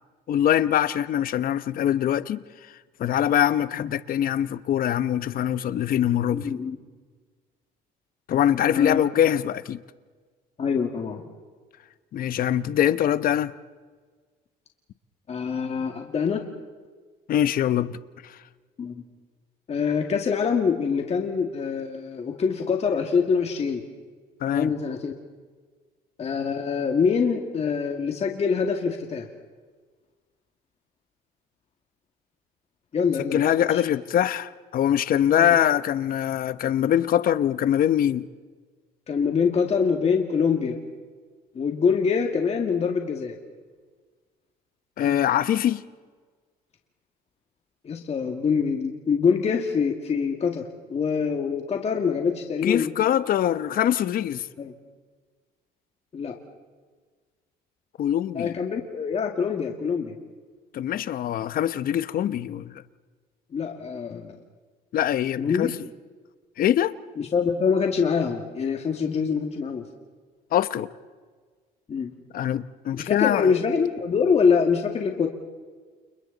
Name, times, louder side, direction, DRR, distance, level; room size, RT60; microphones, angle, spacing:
voice 1, 0.3-2.4 3.0-6.5 8.3-9.8 12.1-13.5 17.3-18.0 18.2-18.3 24.4-24.7 33.2-38.2 45.0-45.8 52.6-54.5 58.0-58.5 60.7-62.8 64.9-65.7 66.6-67.0 70.5-70.9 72.3-73.5, left 10 dB, 60° left, 1.0 m, -23 dB
voice 2, 6.3-6.8 8.7-9.0 10.6-11.3 15.3-16.4 18.8-19.0 19.7-23.8 24.5-25.1 26.2-29.3 32.9-33.4 33.7-33.8 35.3-35.5 39.1-40.8 41.5-43.4 45.0-45.2 47.8-50.6 50.9-52.9 54.6-54.7 56.1-56.4 58.3-60.2 63.5-64.4 65.4-65.7 67.2-69.8 71.9-72.1 72.9-75.3, left 6 dB, 40° left, 2.2 m, -25 dB
29.5 x 29.0 x 4.1 m
cardioid pair, 110°, 17 cm